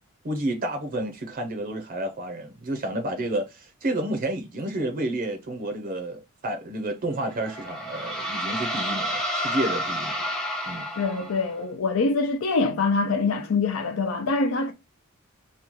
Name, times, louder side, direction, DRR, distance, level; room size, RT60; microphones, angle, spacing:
voice 1, 0.2-10.2 10.7-10.9, right 1 dB, 40° right, 0.5 m, -30 dB
sound 1, 7.2-11.6, equal, 5° left, 0.6 m, -30 dB
voice 2, 11.0-14.7, left 3 dB, 65° left, 0.4 m, -24 dB
2.9 x 2.2 x 3.6 m
head